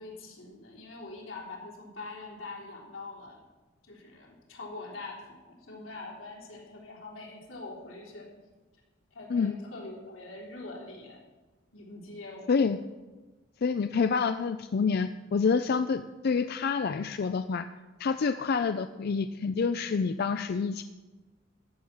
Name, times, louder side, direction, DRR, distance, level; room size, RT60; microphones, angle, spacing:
voice 1, 0.0-3.4 3.8-8.3 9.1-11.2 11.7-12.6, left 3 dB, 85° left, -3 dB, 3.6 m, -44 dB
voice 2, 13.6-17.7 18.0-20.8, left 5 dB, 55° left, 10 dB, 0.4 m, -27 dB
13.5 x 6.2 x 8.5 m, 1.2 s
head